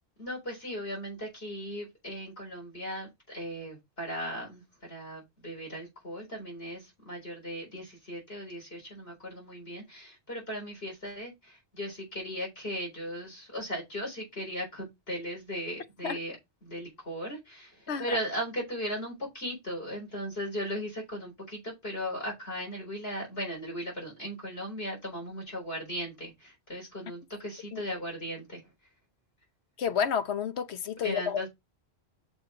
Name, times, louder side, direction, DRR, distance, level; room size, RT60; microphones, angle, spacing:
voice 1, 0.2-16.4 16.6-28.6 31.0-31.5, equal, 65° left, 4.3 m, -37 dB
voice 2, 29.8-31.5, left 7 dB, 85° left, 1.1 m, -30 dB
6.2 x 5.6 x 4.7 m
omnidirectional pair, 1.1 m